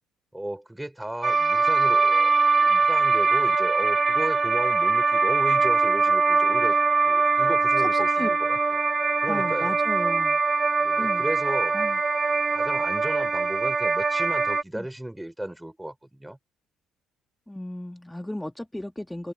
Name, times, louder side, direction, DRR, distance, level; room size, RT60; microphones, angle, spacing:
voice 1, 0.3-6.8 7.0-8.6 9.2-9.8 10.8-11.8 12.5-16.4, right 1 dB, 5° right, 3.4 m, -35 dB
sound 1, 1.2-14.6, right 4 dB, 30° right, 0.8 m, -22 dB
voice 2, 7.8-8.6 9.2-10.4 11.0-11.2 11.7-12.0 14.7-14.9 17.5-19.3, left 1 dB, 10° left, 1.5 m, -35 dB
open air
hypercardioid pair, 50°, 0 cm